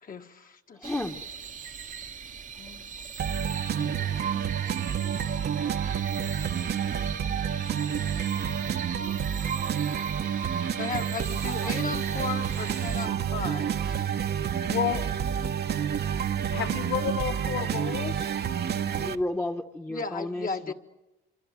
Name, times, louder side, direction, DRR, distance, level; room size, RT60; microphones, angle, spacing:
voice 1, 0.0-0.9 2.6-2.9 3.8-4.6 6.8-7.5 10.8-14.2 19.9-20.7, left 5 dB, 45° left, 5 dB, 1.7 m, -37 dB
voice 2, 0.8-1.2 3.7-3.9 11.6-11.7 15.2-15.5 19.0-20.7, left 1 dB, 10° left, 5 dB, 1.2 m, -33 dB
sound 1, 0.8-13.1, right 6 dB, 40° right, 1.0 m, -41 dB
sound 2, 3.2-19.1, right 8 dB, 55° right, 1.1 m, -29 dB
sound 3, 11.6-19.3, right 9 dB, 85° right, 2.2 m, -46 dB
voice 3, 14.7-15.0 16.5-18.3, left 10 dB, 75° left, 12 dB, 1.0 m, -31 dB
26.5 x 25.5 x 7.6 m, 1.0 s
cardioid pair, 90°, 20 cm